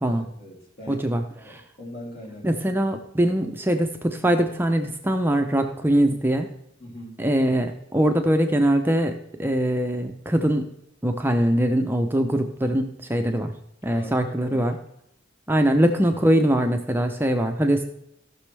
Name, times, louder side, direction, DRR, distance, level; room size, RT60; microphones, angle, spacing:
voice 1, 0.0-2.7 6.8-7.2 13.8-14.7 15.6-15.7, left 1 dB, 50° left, -2 dB, 3.1 m, -41 dB
voice 2, 0.9-1.2 2.4-6.5 7.2-10.7 11.0-13.5 13.8-14.8 15.5-17.8, right 1 dB, 10° right, 5 dB, 0.6 m, -22 dB
16.5 x 6.2 x 3.3 m, 0.77 s
head